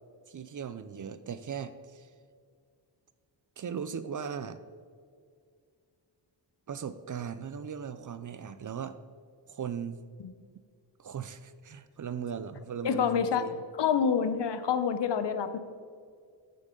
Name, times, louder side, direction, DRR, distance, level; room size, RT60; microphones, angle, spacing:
voice 1, 0.3-2.1 3.6-4.6 6.7-9.0 9.5-10.0 11.0-13.6, right 7 dB, 45° right, 13 dB, 0.5 m, -38 dB
voice 2, 12.8-13.5 13.8-15.6, left 7 dB, 70° left, 11 dB, 0.8 m, -27 dB
14.0 x 7.7 x 3.8 m, 2.2 s
wide cardioid pair, 145°, 44 cm